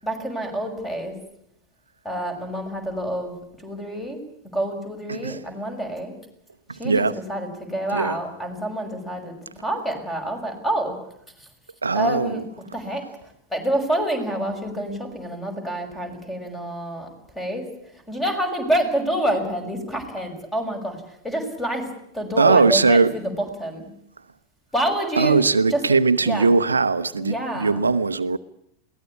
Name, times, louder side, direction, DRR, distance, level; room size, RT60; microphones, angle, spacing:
voice 1, 0.0-1.1 2.0-3.4 3.6-4.2 4.5-6.1 6.8-11.0 11.4-11.5 11.9-12.4 12.7-13.0 13.5-17.1 17.3-17.7 18.1-21.0 21.2-21.9 22.1-23.9 24.7-25.4 25.7-25.8 26.2-26.5 27.2-27.9, right 1 dB, 10° left, 6.2 m, -27 dB
voice 2, 5.1-5.4 6.8-7.1 7.9-8.2 11.8-12.4 22.4-23.1 25.2-28.4, right 4 dB, 75° right, 0.8 m, -19 dB
22.5 x 18.0 x 8.5 m
figure-of-eight pair, 90°, 0 cm